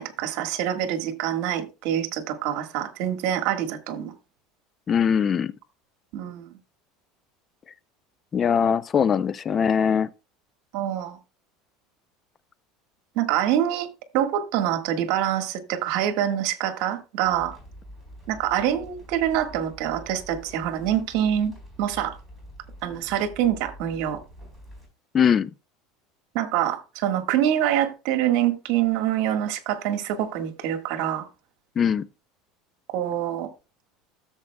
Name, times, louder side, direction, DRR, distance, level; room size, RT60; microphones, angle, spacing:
voice 1, 0.0-4.1 6.1-6.6 10.7-11.2 13.1-13.9 14.1-17.6 18.3-21.5 21.8-22.2 22.8-24.2 26.3-31.3 32.9-33.5, right 11 dB, 65° right, 1.5 m, -25 dB
voice 2, 4.9-5.5 8.3-10.1 25.1-25.5 31.8-32.1, left 7 dB, 25° left, 0.4 m, -21 dB
sound 1, 17.2-24.9, equal, 5° left, 4.2 m, -46 dB
13.5 x 7.1 x 2.2 m
cardioid pair, 150°, 0 cm